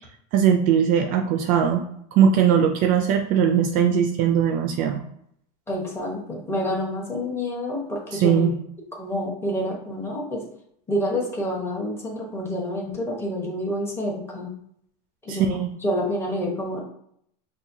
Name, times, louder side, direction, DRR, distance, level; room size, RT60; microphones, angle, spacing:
voice 1, 0.3-1.8 2.2-5.0 8.1-8.5 15.3-15.7, right 8 dB, 40° right, 5 dB, 0.4 m, -20 dB
voice 2, 5.7-8.5 9.0-10.4 10.9-14.5 15.2-15.5 15.8-16.8, left 1 dB, 10° left, -3 dB, 1.0 m, -28 dB
5.5 x 2.6 x 2.7 m, 0.70 s
supercardioid pair, 150°, 20 cm